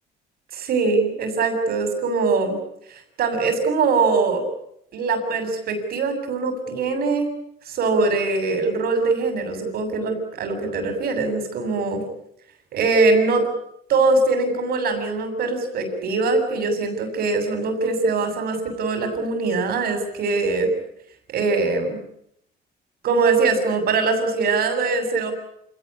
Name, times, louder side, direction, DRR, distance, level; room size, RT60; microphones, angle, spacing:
voice 1, 0.5-2.6 2.9-4.4 4.9-7.3 7.6-12.0 12.7-13.5 13.9-20.7 21.3-22.0 23.0-25.3, right 3 dB, 65° right, 7 dB, 7.6 m, -22 dB
28.5 x 18.5 x 10.0 m, 0.75 s
cardioid pair, 110°, 17 cm